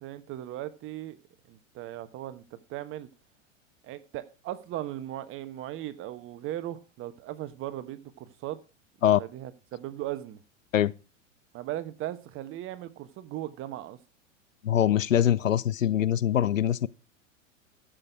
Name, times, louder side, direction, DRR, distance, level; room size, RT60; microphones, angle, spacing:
voice 1, 0.0-1.2 1.5-3.1 3.8-8.6 9.2-10.4 11.5-14.0, right 13 dB, 30° right, 1.2 m, -38 dB
voice 2, 14.6-16.9, left 10 dB, 75° left, 0.7 m, -23 dB
14.5 x 6.4 x 4.7 m
figure-of-eight pair, 95°, 39 cm